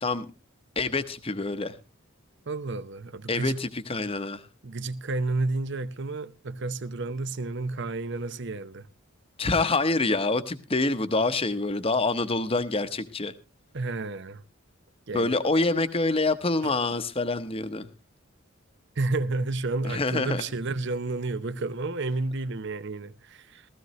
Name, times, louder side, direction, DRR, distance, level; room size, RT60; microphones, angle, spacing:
voice 1, 0.0-0.3 0.8-1.8 3.3-4.5 9.4-13.3 15.1-17.9 19.8-20.4, left 3 dB, 25° left, 0.9 m, -26 dB
voice 2, 2.5-3.6 4.6-8.9 13.7-14.4 15.1-15.3 16.6-16.7 19.0-23.7, right 3 dB, 55° right, 0.7 m, -31 dB
16.0 x 14.5 x 3.1 m
head